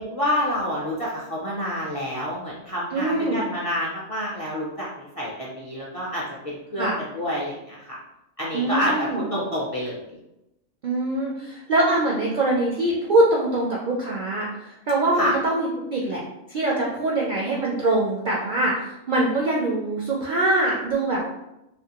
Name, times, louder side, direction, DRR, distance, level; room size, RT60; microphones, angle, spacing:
voice 1, 0.0-8.0 8.4-10.2 15.1-15.3, equal, 40° left, -6 dB, 0.5 m, -28 dB
voice 2, 2.9-3.4 6.8-7.0 8.5-9.2 10.8-16.2 16.5-21.3, right 2 dB, 65° right, -3 dB, 0.5 m, -23 dB
2.6 x 2.5 x 2.8 m, 0.89 s
omnidirectional pair, 1.3 m